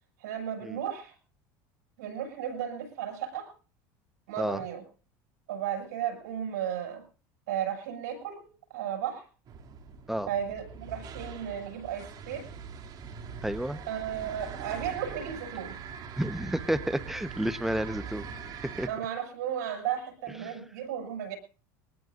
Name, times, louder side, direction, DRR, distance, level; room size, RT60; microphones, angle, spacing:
voice 1, 0.2-1.1 2.0-3.5 4.3-4.8 5.5-7.0 7.5-8.4 8.7-9.2 10.3-12.5 13.9-15.8 18.9-21.4, right 9 dB, 85° right, 4 dB, 6.4 m, -34 dB
sound 1, 9.5-18.9, right 6 dB, 45° right, 2.7 m, -42 dB
voice 2, 13.4-13.8 16.2-18.3 18.8-18.9 20.4-20.5, right 1 dB, 5° right, 12 dB, 1.1 m, -31 dB
23.0 x 19.0 x 2.6 m, 0.38 s
supercardioid pair, 120°, 9 cm